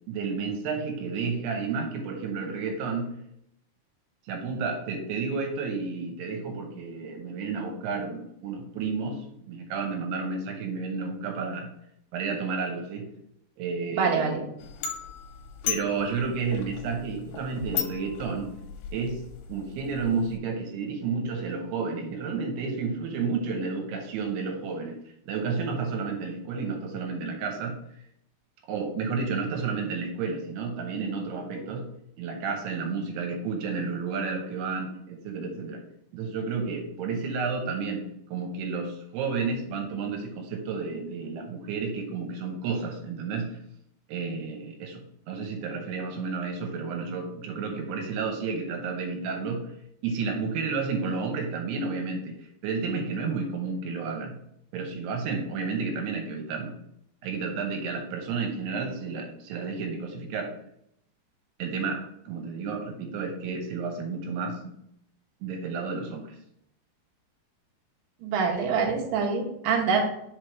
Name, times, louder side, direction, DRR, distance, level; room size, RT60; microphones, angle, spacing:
voice 1, 0.1-3.1 4.3-11.7 12.1-13.1 13.6-14.5 15.7-18.5 18.9-19.2 19.5-25.0 25.3-27.8 28.7-31.8 32.2-35.8 36.1-43.6 44.1-49.7 50.0-54.3 54.7-56.7 57.2-60.5 61.6-64.6 65.4-66.4, right 4 dB, 85° right, 3 dB, 2.9 m, -31 dB
voice 2, 14.0-14.4 68.2-70.0, right 5 dB, 65° right, -1 dB, 2.6 m, -25 dB
sound 1, 14.6-20.4, left 9 dB, 80° left, 2.4 m, -37 dB
5.2 x 4.6 x 4.5 m, 0.75 s
omnidirectional pair, 4.6 m